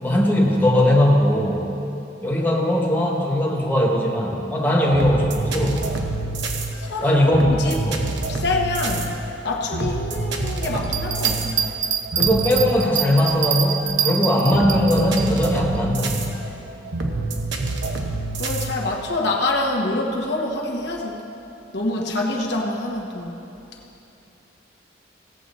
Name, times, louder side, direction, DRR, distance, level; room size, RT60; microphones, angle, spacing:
voice 1, 0.0-1.6 2.2-5.9 7.0-8.0 12.1-16.3, left 1 dB, 10° left, -3 dB, 1.3 m, -19 dB
sound 1, 4.7-19.3, right 2 dB, 80° right, 0.9 m, -28 dB
voice 2, 6.8-7.2 7.5-7.8 8.3-9.2 9.4-11.6 18.3-21.2 21.7-23.5, left 2 dB, 65° left, -1 dB, 1.2 m, -26 dB
Bell, 10.8-15.3 15.7-15.8, right 8 dB, 40° right, 0.6 m, -24 dB
16.5 x 7.5 x 4.2 m, 2.9 s
head